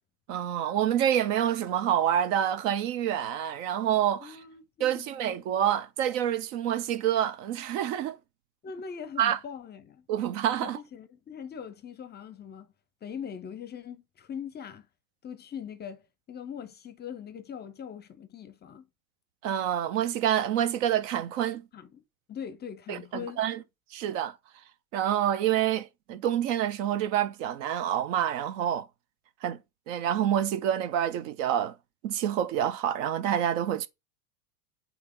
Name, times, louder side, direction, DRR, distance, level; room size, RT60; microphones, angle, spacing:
voice 1, 0.3-4.4 4.8-8.2 9.2-9.4 10.1-10.8 19.4-21.7 22.9-23.6 23.9-24.4 24.9-28.9 29.4-29.6 29.9-31.8 32.0-33.9, right 10 dB, 50° right, 0.9 m, -27 dB
voice 2, 4.2-5.3 8.6-10.1 10.6-12.7 13.0-14.9 15.2-18.9 21.7-22.0 22.3-23.5, left 7 dB, 20° left, 0.7 m, -41 dB
8.4 x 3.0 x 3.8 m
hypercardioid pair, 110°, 48 cm